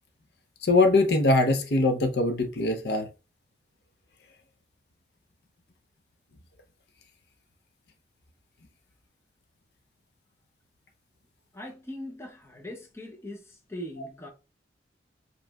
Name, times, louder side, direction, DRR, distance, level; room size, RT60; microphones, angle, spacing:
voice 1, 0.6-3.1, left 2 dB, 65° left, 0.6 m, -22 dB
voice 2, 11.5-14.3, left 1 dB, 15° left, 0.6 m, -40 dB
4.9 x 3.0 x 2.3 m
head